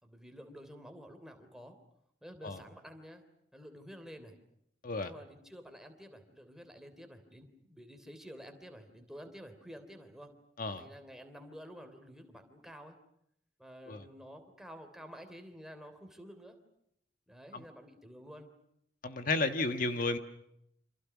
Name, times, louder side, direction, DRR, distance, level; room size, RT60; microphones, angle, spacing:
voice 1, 0.0-1.8 2.2-3.2 3.5-4.4 5.0-10.3 10.7-13.0 13.6-16.6 17.3-18.5, equal, 5° right, 6 dB, 3.4 m, -50 dB
voice 2, 19.0-20.2, left 3 dB, 50° left, 8 dB, 1.4 m, -32 dB
28.5 x 27.5 x 6.1 m, 0.75 s
head